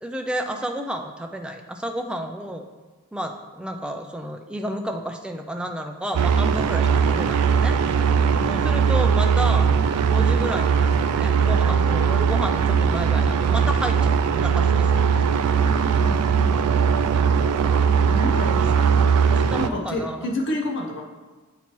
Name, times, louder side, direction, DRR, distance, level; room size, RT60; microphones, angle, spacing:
voice 1, 0.0-2.6 3.1-7.8 8.5-9.7 10.0-15.3 17.1-17.5 18.3-18.7 19.2-20.3, equal, 5° right, 4 dB, 0.3 m, -31 dB
sound 1, 6.1-19.7, right 6 dB, 85° right, 0.4 m, -20 dB
voice 2, 15.8-16.6 18.1-19.0 19.5-21.0, left 1 dB, 55° left, 1 dB, 0.7 m, -30 dB
8.2 x 2.9 x 4.4 m, 1.3 s
head